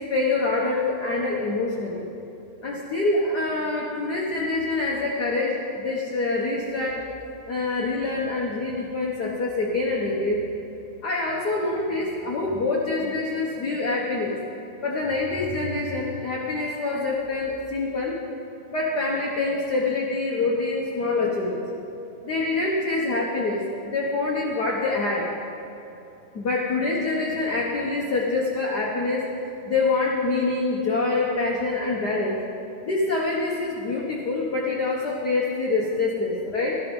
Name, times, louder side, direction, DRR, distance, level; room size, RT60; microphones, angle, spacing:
voice 1, 0.1-2.0 2.6-7.1 7.5-10.4 11.0-14.4 14.8-18.2 18.7-21.6 22.2-25.3 26.3-29.2 29.6-32.4 32.8-36.8, left 3 dB, 90° left, -2 dB, 0.8 m, -25 dB
13.0 x 12.0 x 5.3 m, 2.9 s
omnidirectional pair, 3.7 m